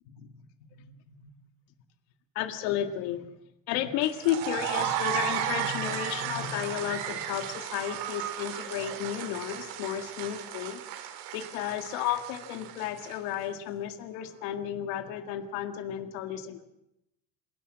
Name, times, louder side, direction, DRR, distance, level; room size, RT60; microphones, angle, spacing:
voice 1, 0.7-1.3 2.4-3.3 3.7-10.8 11.3-16.7, left 10 dB, 80° left, 7 dB, 2.0 m, -33 dB
sound 1, 4.0-13.3, right 10 dB, 90° right, 3.4 m, -34 dB
27.5 x 17.5 x 7.5 m, 0.86 s
cardioid pair, 160°, 41 cm